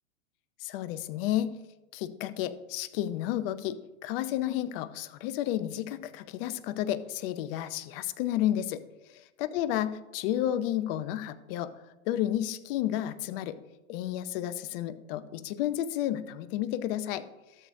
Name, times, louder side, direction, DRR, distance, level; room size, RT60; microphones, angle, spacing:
voice 1, 0.6-1.5 1.9-8.8 9.1-11.7 12.1-13.6 13.9-17.3, left 12 dB, 40° left, 13 dB, 0.7 m, -31 dB
13.0 x 7.8 x 2.6 m, 1.0 s
hypercardioid pair, 110°, 42 cm